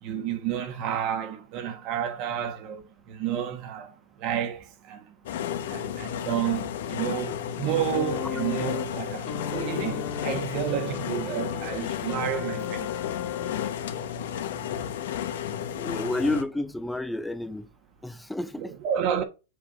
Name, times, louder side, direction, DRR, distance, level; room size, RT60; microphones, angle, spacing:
voice 1, 0.0-5.1 5.7-12.9 15.8-15.9 18.6-19.2, right 9 dB, 40° right, 1.2 m, -31 dB
sound 1, 5.3-16.4, left 9 dB, 70° left, 1.0 m, -33 dB
sound 2, 7.9-14.1 15.2-15.3, left 6 dB, 40° left, 1.8 m, -36 dB
voice 2, 15.7-17.7 18.0-18.7, left 2 dB, 5° left, 0.5 m, -30 dB
7.9 x 5.1 x 2.5 m
hypercardioid pair, 145°, 0 cm